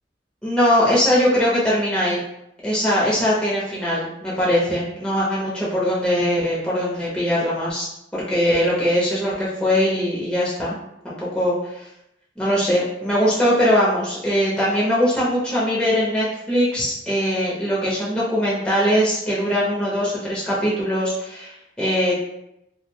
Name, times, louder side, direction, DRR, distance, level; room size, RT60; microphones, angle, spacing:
voice 1, 0.4-2.2 2.6-7.9 8.1-10.7 11.0-11.9 12.4-22.2, equal, 5° left, -8 dB, 0.5 m, -21 dB
2.4 x 2.0 x 3.1 m, 0.83 s
head